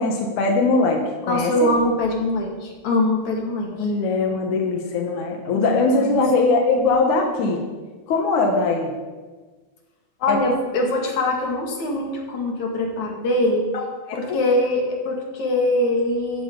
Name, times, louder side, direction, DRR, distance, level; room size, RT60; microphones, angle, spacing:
voice 1, 0.0-1.7 3.7-7.7 8.1-8.9 10.3-10.4 13.7-13.8 14.1-14.4, left 3 dB, 75° left, 2 dB, 1.8 m, -21 dB
voice 2, 1.3-3.9 5.5-6.2 10.2-13.7 14.2-16.4, left 1 dB, 45° left, 0 dB, 2.9 m, -23 dB
15.5 x 14.5 x 4.0 m, 1.3 s
omnidirectional pair, 5.7 m